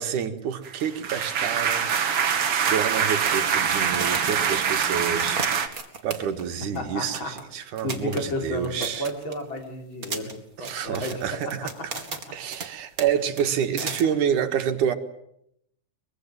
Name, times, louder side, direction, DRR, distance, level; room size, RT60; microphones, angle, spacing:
voice 1, 0.0-1.9 2.2-5.4 6.0-9.1 10.6-11.9 12.3-14.9, right 8 dB, 80° right, 7 dB, 3.1 m, -28 dB
sound 1, 0.6-5.7, right 7 dB, 50° right, 2.4 m, -24 dB
sound 2, 2.6-6.5 6.7-6.8 7.1-7.4 7.8-9.6 10.0-12.7 13.0-13.1 13.4-14.0, right 4 dB, 30° right, 2.3 m, -35 dB
voice 2, 6.7-10.3 10.6-12.0 13.8-13.9, left 1 dB, 40° left, 3 dB, 4.2 m, -33 dB
23.5 x 23.0 x 7.5 m, 0.75 s
omnidirectional pair, 3.6 m